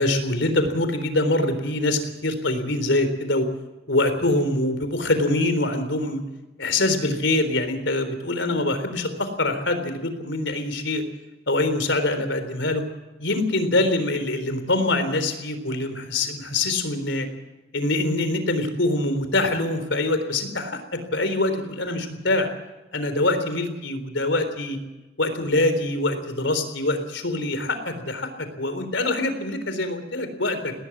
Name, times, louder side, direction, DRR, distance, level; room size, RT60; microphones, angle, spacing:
voice 1, 0.0-3.5 3.9-6.2 6.6-11.0 11.5-12.8 13.2-17.3 17.7-22.5 22.9-24.8 25.2-30.7, left 2 dB, 90° left, 9 dB, 3.8 m, -24 dB
19.5 x 19.0 x 7.4 m, 1.1 s
head